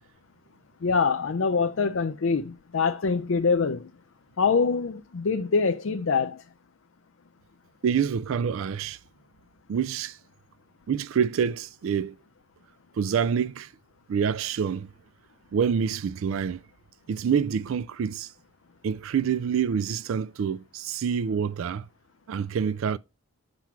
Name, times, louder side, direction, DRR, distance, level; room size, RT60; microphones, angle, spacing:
voice 1, 0.8-3.9 4.4-6.4, left 5 dB, 60° left, 0.5 m, -24 dB
voice 2, 7.8-9.0 9.7-10.2 10.9-12.2 13.0-13.7 14.1-14.9 15.5-16.6 17.1-18.3 18.8-21.9 22.3-23.0, right 7 dB, 65° right, 0.3 m, -27 dB
7.4 x 6.1 x 4.5 m
head